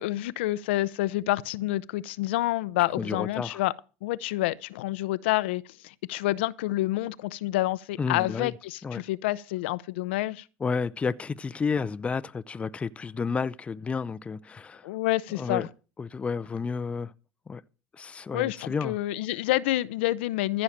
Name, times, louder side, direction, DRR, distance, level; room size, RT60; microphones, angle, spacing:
voice 1, 0.0-3.7 4.0-10.4 14.8-15.7 18.3-20.6, left 17 dB, 85° left, 0.7 m, -28 dB
voice 2, 3.0-3.6 8.0-8.5 8.8-9.0 10.6-14.9 15.4-15.7 16.0-17.1 17.5-17.6 17.9-19.0, left 5 dB, 20° left, 0.5 m, -31 dB
14.5 x 6.4 x 7.3 m
supercardioid pair, 105°, 6 cm